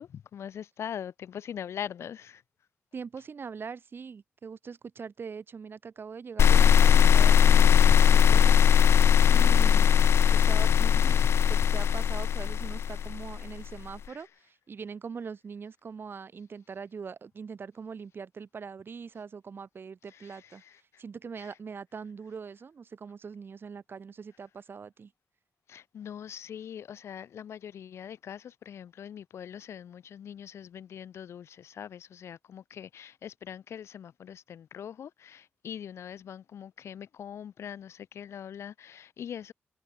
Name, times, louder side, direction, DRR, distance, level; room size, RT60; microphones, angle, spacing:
voice 1, 0.0-2.4 14.1-14.3 20.1-21.0 21.4-21.5 25.7-39.5, left 9 dB, 90° left, 4.6 m, -42 dB
voice 2, 2.9-8.6 9.3-10.0 10.3-11.2 11.5-20.6 21.0-25.1, right 5 dB, 55° right, 5.1 m, -42 dB
sound 1, 6.4-13.5, left 8 dB, 75° left, 0.5 m, -20 dB
cardioid pair, 90°, 4 cm